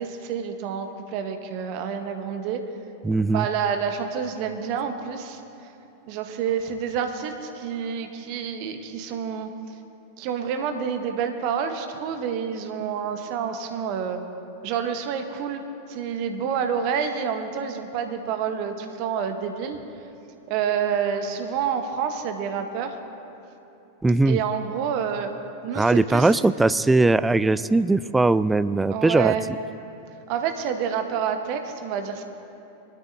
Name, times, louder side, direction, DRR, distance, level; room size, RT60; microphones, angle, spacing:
voice 1, 0.0-2.6 3.3-5.4 6.1-9.5 10.2-14.2 14.6-15.6 15.9-19.8 20.5-23.0 24.3-25.3 25.6-26.3 28.9-29.4 30.3-32.2, right 7 dB, 45° right, 7 dB, 1.0 m, -28 dB
voice 2, 3.0-3.5 24.0-24.4 25.8-29.3, right 2 dB, 10° right, 16 dB, 0.3 m, -20 dB
22.0 x 12.5 x 2.7 m, 2.8 s
figure-of-eight pair, 90°, 0 cm